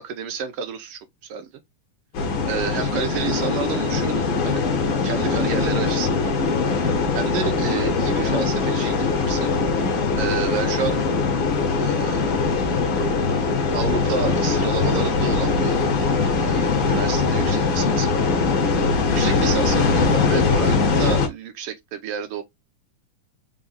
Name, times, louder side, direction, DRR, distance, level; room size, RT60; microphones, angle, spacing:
voice 1, 0.0-1.5 2.5-4.6 5.0-6.3 7.1-9.5 10.2-11.0 11.8-12.4 13.7-15.8 16.4-18.4 19.1-22.4, right 7 dB, 70° right, 1.4 m, -30 dB
sound 1, 2.1-21.3, left 4 dB, 55° left, 1.6 m, -21 dB
5.0 x 2.4 x 3.9 m
omnidirectional pair, 3.3 m